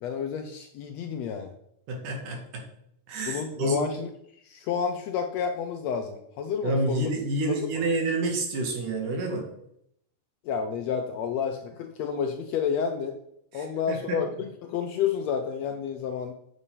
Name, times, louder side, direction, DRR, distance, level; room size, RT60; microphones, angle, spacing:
voice 1, 0.0-1.5 3.3-4.1 4.4-7.1 7.5-7.9 10.4-13.2 13.5-16.3, left 7 dB, 75° left, 5 dB, 1.6 m, -30 dB
voice 2, 1.9-2.6 3.1-3.8 6.6-9.5 13.5-14.2, right 2 dB, 80° right, 2 dB, 3.4 m, -29 dB
8.2 x 6.3 x 5.5 m, 0.74 s
omnidirectional pair, 3.7 m